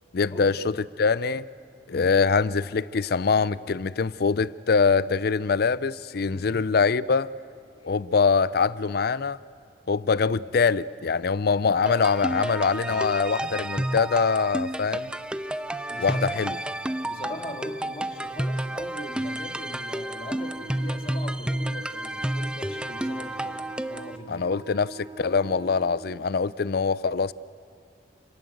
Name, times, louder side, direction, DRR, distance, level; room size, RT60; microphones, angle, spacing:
voice 1, 0.1-1.4 1.9-7.3 7.8-9.4 9.9-15.1 16.0-16.6 24.3-27.3, left 5 dB, 60° left, 0.5 m, -24 dB
voice 2, 6.3-6.6 7.8-7.9 15.9-16.4 17.0-24.5, left 1 dB, 30° left, 2.2 m, -40 dB
sound 1, 11.9-24.2, right 1 dB, 5° right, 0.6 m, -31 dB
Wind instrument woodwind instrument, 20.4-26.2, right 2 dB, 20° right, 0.9 m, -45 dB
29.0 x 18.5 x 7.9 m
head